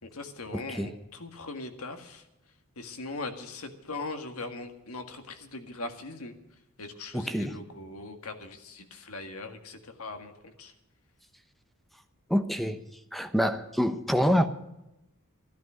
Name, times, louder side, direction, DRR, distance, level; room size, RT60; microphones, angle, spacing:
voice 1, 0.0-2.2 2.8-6.3 6.8-10.7, left 3 dB, 70° left, 6 dB, 1.9 m, -40 dB
voice 2, 0.5-0.9 7.1-7.6 12.3-12.8 13.1-14.5, equal, ahead, 9 dB, 0.9 m, -26 dB
14.0 x 12.5 x 6.3 m, 0.91 s
head